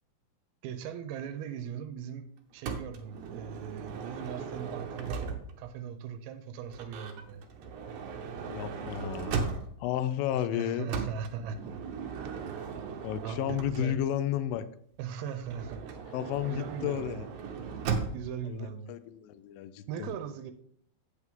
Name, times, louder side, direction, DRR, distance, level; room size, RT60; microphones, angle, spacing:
voice 1, 0.6-2.2 2.5-5.3 5.6-7.4 10.3-11.6 12.1-12.7 13.2-14.0 15.0-16.0 16.5-17.3 18.1-19.0 19.9-20.5, right 8 dB, 90° right, 9 dB, 2.6 m, -39 dB
Motor vehicle (road) / Sliding door, 2.6-5.7 6.7-10.0 10.9-14.2 15.4-18.4, right 5 dB, 70° right, 2.0 m, -37 dB
voice 2, 8.5-9.5 9.8-10.9 13.0-14.7 16.1-17.3 18.4-20.1, left 11 dB, 80° left, 13 dB, 2.3 m, -32 dB
8.3 x 8.1 x 3.7 m, 0.64 s
omnidirectional pair, 4.2 m